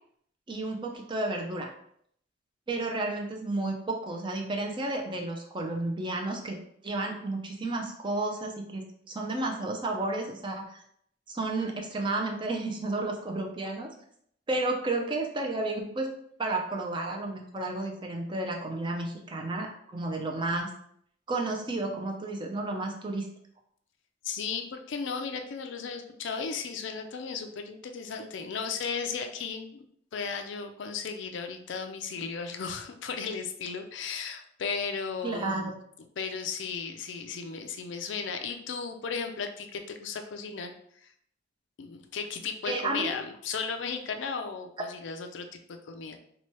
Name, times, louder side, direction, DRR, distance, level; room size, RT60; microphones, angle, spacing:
voice 1, 0.5-1.7 2.7-6.6 6.8-10.8 11.3-13.9 14.5-16.1 16.4-20.7 21.3-23.3 35.2-35.7 42.7-43.2, right 2 dB, 25° right, 2 dB, 0.5 m, -32 dB
voice 2, 24.2-29.9 30.1-35.7 36.2-40.7 41.0-41.1 41.8-46.2, left 5 dB, 70° left, 6 dB, 0.4 m, -35 dB
3.0 x 2.2 x 4.2 m, 0.68 s
head